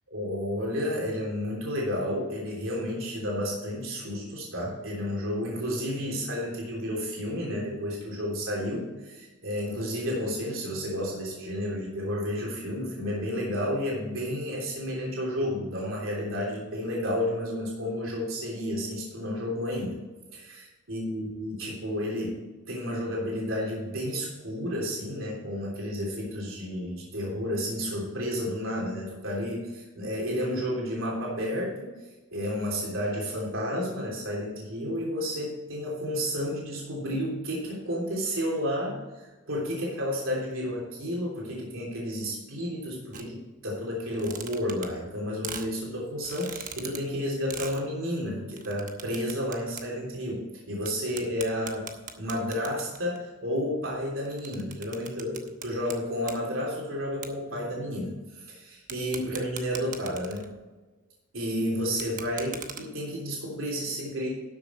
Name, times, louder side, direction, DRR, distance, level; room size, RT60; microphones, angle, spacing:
voice 1, 0.1-20.0 20.3-20.4 20.9-22.4 22.7-31.9 32.3-51.9 52.2-55.3 55.6-60.5 61.3-64.3, equal, 75° right, -3 dB, 3.3 m, -31 dB
sound 1, 43.1-43.2 44.1-45.1 45.4-45.7 46.2-47.0 47.5-47.8 48.5-49.8 50.1-50.2 50.9-51.0 51.2-53.2 53.9-56.0 56.2-56.4 57.2-57.3 58.9-60.6 61.9-62.8, right 7 dB, 40° right, 1.0 m, -40 dB
12.5 x 7.1 x 4.5 m, 1.2 s
head